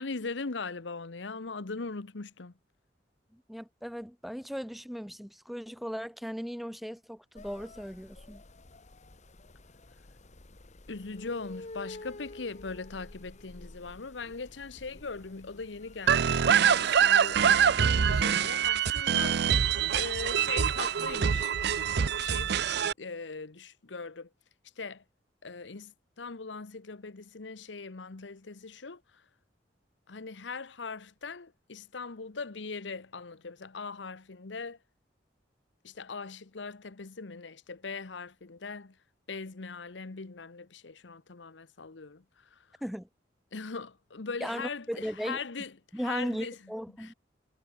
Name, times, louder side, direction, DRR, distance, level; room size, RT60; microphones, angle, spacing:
voice 1, 0.0-2.5 10.9-19.4 19.9-21.5 22.2-22.6 23.0-24.3 24.8-25.0 25.4-29.0 30.1-34.8 35.8-39.0 39.3-42.6 43.5-45.7 46.0-46.6 47.0-47.1, left 4 dB, 85° left, 1.0 m, -40 dB
voice 2, 3.3-8.4 42.8-43.1 44.4-45.4 45.9-47.1, equal, ahead, 0.9 m, -37 dB
sound 1, 7.3-22.5, left 2 dB, 40° left, 1.3 m, -50 dB
sound 2, 16.1-22.9, right 8 dB, 65° right, 0.5 m, -25 dB
head